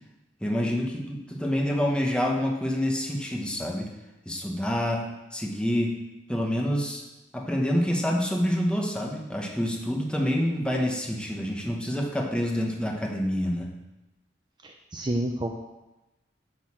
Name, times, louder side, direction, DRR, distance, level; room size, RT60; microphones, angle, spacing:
voice 1, 0.4-3.9 4.2-6.0 6.3-7.0 7.3-13.7, equal, 5° left, 0 dB, 1.2 m, -27 dB
voice 2, 14.6-15.6, right 1 dB, 25° right, 2 dB, 0.6 m, -29 dB
11.0 x 4.0 x 7.3 m, 1.0 s
head